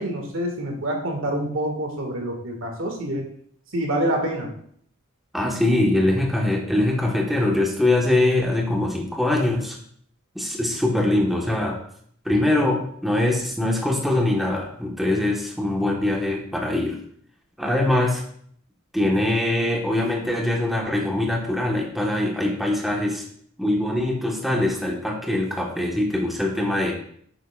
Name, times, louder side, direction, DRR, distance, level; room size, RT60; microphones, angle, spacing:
voice 1, 0.0-3.2 3.7-4.5, right 1 dB, 75° right, 2 dB, 1.9 m, -26 dB
voice 2, 5.3-9.8 10.3-11.8 12.2-17.0 17.6-18.2 18.9-23.2 23.6-26.9, left 1 dB, ahead, -1 dB, 1.3 m, -22 dB
10.0 x 7.9 x 2.4 m, 0.62 s
head